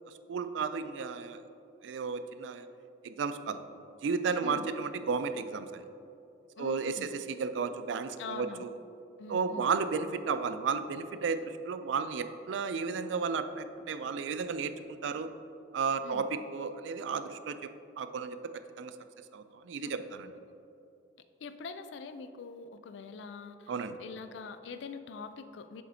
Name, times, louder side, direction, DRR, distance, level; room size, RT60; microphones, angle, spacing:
voice 1, 0.3-1.4 1.8-2.7 3.0-3.6 4.0-5.9 6.6-8.7 9.3-15.3 15.7-17.7 18.0-18.4 18.8-18.9 19.3-20.3 23.7-23.9, right 5 dB, 80° right, 10 dB, 0.4 m, -33 dB
voice 2, 6.6-7.1 8.2-8.7 9.2-9.7 16.0-16.3 21.4-25.8, left 4 dB, 75° left, 10 dB, 0.4 m, -43 dB
7.3 x 6.7 x 2.7 m, 2.7 s
head